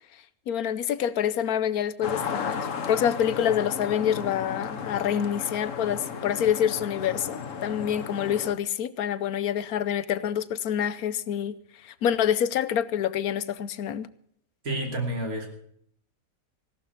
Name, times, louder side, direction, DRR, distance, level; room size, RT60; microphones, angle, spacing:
voice 1, 0.5-11.6 11.8-14.1, left 9 dB, 90° left, 1.3 m, -27 dB
sound 1, 2.0-8.5, left 6 dB, 65° left, 1.5 m, -34 dB
voice 2, 14.6-15.5, right 1 dB, 90° right, 3.3 m, -29 dB
16.5 x 12.0 x 5.9 m
omnidirectional pair, 1.5 m